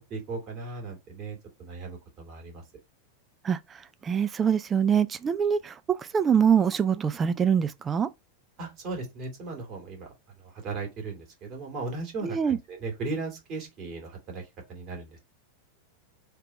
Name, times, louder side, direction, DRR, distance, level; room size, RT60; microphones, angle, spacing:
voice 1, 0.1-2.6 8.6-15.2, right 3 dB, 35° right, 1.9 m, -37 dB
voice 2, 3.4-8.1 12.2-12.6, right 7 dB, 20° right, 0.3 m, -24 dB
3.3 x 2.9 x 4.3 m
figure-of-eight pair, 90°, 0 cm